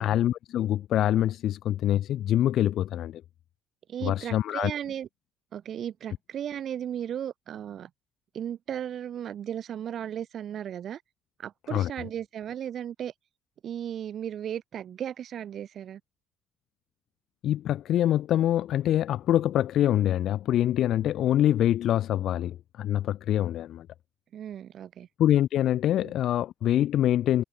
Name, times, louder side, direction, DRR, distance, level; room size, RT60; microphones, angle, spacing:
voice 1, 0.0-3.2 4.0-4.7 11.7-11.9 17.4-23.9 25.2-27.4, left 12 dB, 70° left, 0.8 m, -25 dB
voice 2, 3.9-5.1 5.5-7.9 8.3-11.0 11.4-13.1 13.6-16.0 24.3-25.1 26.0-26.1, right 9 dB, 60° right, 0.6 m, -35 dB
supercardioid pair, 65°, 0 cm